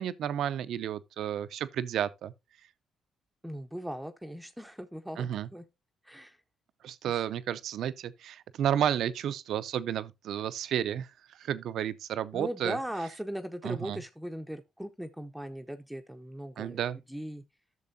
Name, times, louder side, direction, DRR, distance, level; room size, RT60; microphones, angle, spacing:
voice 1, 0.0-2.3 5.2-5.5 6.8-11.1 11.4-12.8 13.6-14.0 16.6-17.0, right 10 dB, 75° right, 0.5 m, -32 dB
voice 2, 3.4-5.6 6.0-6.4 7.0-7.2 12.3-16.8 17.1-17.4, equal, ahead, 0.7 m, -39 dB
12.0 x 6.6 x 2.7 m
cardioid pair, 90°, 0 cm